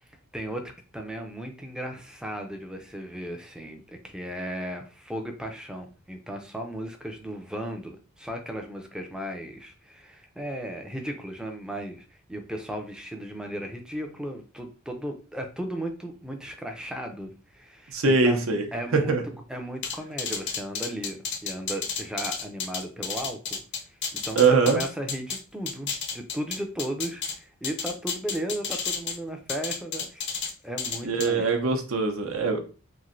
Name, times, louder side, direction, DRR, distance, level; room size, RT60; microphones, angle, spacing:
voice 1, 0.3-0.6 0.9-19.2 19.5-30.3 30.6-31.5, right 1 dB, 5° right, 4 dB, 0.4 m, -36 dB
voice 2, 17.9-18.6 18.9-19.2 24.4-24.8 31.0-32.6, right 4 dB, 70° right, 5 dB, 0.6 m, -22 dB
sound 1, 19.8-25.4 25.7-27.3 27.6-29.2 29.5-30.5 30.8-31.3, left 6 dB, 55° left, 0.6 m, -31 dB
3.0 x 2.6 x 2.5 m, 0.36 s
head